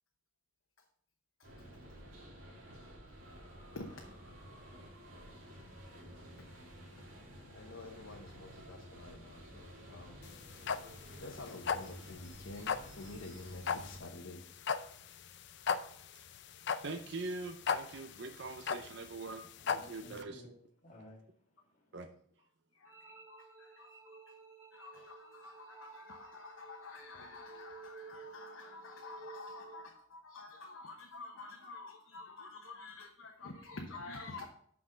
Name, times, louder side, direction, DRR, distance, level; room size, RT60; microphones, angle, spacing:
sound 1, 1.4-14.0, equal, 85° right, 2.5 m, -52 dB
voice 1, 6.9-7.3 7.5-10.2 11.2-14.5 15.1-15.2 22.7-22.9 23.3-24.2 24.7-34.5, left 3 dB, 80° left, 1.0 m, -49 dB
sound 2, 10.2-20.2, left 6 dB, 60° left, 0.5 m, -37 dB
voice 2, 16.8-19.4 19.7-20.4 21.9-22.1, right 3 dB, 60° right, 0.6 m, -43 dB
voice 3, 19.6-20.5 20.8-21.9, left 1 dB, 35° left, 2.3 m, -56 dB
sound 3, 22.8-29.8, right 5 dB, 10° right, 1.6 m, -54 dB
6.1 x 6.0 x 5.0 m
head